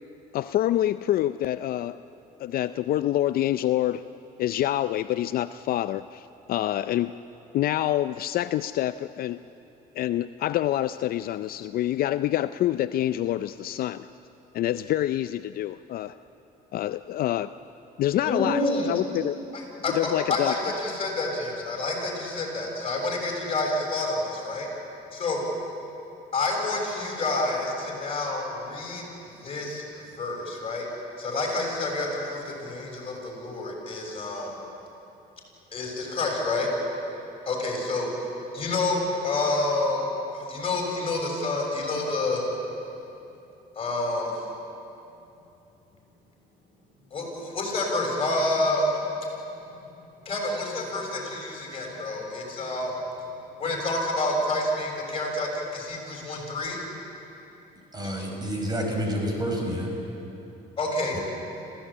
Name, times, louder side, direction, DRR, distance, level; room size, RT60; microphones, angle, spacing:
voice 1, 0.3-1.9 2.4-4.0 4.4-7.1 7.5-9.4 10.0-14.1 14.5-16.1 16.7-17.5 18.0-18.6 18.9-19.4 19.9-20.5, left 13 dB, 60° left, 12 dB, 0.5 m, -26 dB
voice 2, 18.2-18.9 19.5-24.7 25.1-25.4 26.3-29.8 30.1-30.9 31.2-34.5 35.7-36.7 37.4-38.1 38.5-40.0 40.3-42.4 43.7-44.3 47.1-49.0 49.7-49.8 50.2-53.0 53.6-56.8 60.8-61.2, left 2 dB, 35° left, 0 dB, 6.6 m, -28 dB
voice 3, 57.9-59.9 61.1-61.2, equal, 25° right, 1 dB, 5.1 m, -29 dB
26.5 x 16.0 x 8.7 m, 2.9 s
cardioid pair, 110°, 17 cm